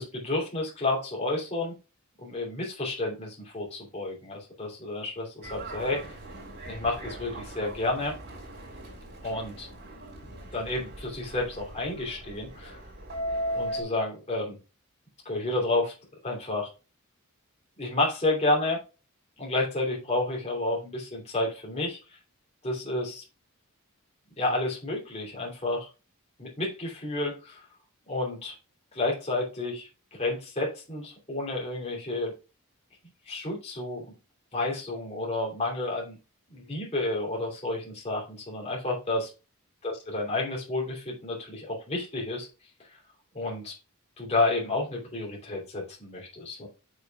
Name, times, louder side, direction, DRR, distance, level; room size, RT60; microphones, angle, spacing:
voice 1, 0.0-1.7 2.2-6.1 6.7-8.1 9.2-9.7 10.5-12.8 13.5-14.6 15.2-15.9 16.2-16.7 17.8-18.8 19.4-22.0 22.6-23.2 24.4-25.9 26.4-27.6 28.1-28.5 28.9-29.9 30.2-32.3 33.3-34.0 34.5-36.2 36.5-39.3 39.8-42.5 43.3-43.7 44.2-46.7, left 2 dB, 30° left, -3 dB, 2.9 m, -30 dB
Subway metro underground, 5.4-13.8, right 1 dB, 50° right, 3.9 m, -38 dB
8.5 x 6.5 x 2.3 m, 0.31 s
head